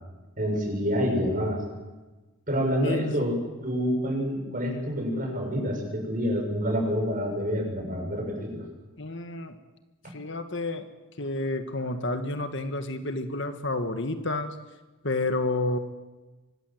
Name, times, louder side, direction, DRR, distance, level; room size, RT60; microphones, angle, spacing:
voice 1, 0.4-1.6 2.5-8.6, equal, 40° right, 1 dB, 7.6 m, -27 dB
voice 2, 2.8-3.4 9.0-9.5 10.1-10.9 11.2-14.6 15.0-15.8, left 2 dB, 55° left, 8 dB, 1.7 m, -30 dB
25.0 x 21.0 x 8.0 m, 1.2 s
head